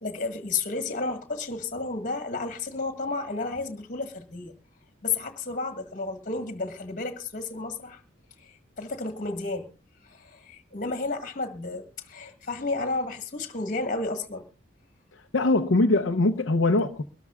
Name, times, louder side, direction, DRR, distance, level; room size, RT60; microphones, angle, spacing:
voice 1, 0.0-4.5 5.0-8.0 8.4-8.5 8.8-9.7 10.1-14.4, left 3 dB, 45° left, 1.7 m, -32 dB
voice 2, 15.3-17.0, left 2 dB, 85° left, 0.7 m, -22 dB
23.5 x 13.0 x 2.4 m
head